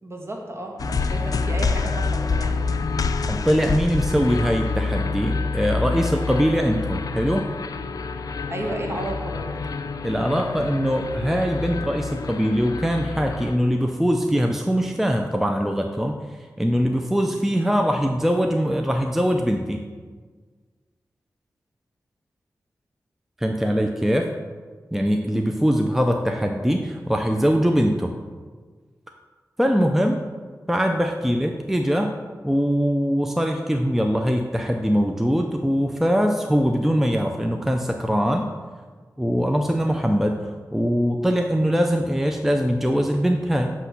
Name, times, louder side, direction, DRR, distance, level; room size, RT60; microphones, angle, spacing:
voice 1, 0.0-2.6 8.5-9.5, right 1 dB, 40° right, 0 dB, 1.4 m, -32 dB
sound 1, 0.8-13.6, left 4 dB, 65° left, 0.4 m, -27 dB
voice 2, 3.3-7.5 10.0-16.2 16.6-19.8 23.4-24.3 24.9-28.1 29.6-30.2 30.7-32.1 32.4-38.5 39.2-43.7, equal, 5° right, 3 dB, 0.5 m, -22 dB
8.0 x 3.0 x 5.8 m, 1.5 s
cardioid pair, 50°, 7 cm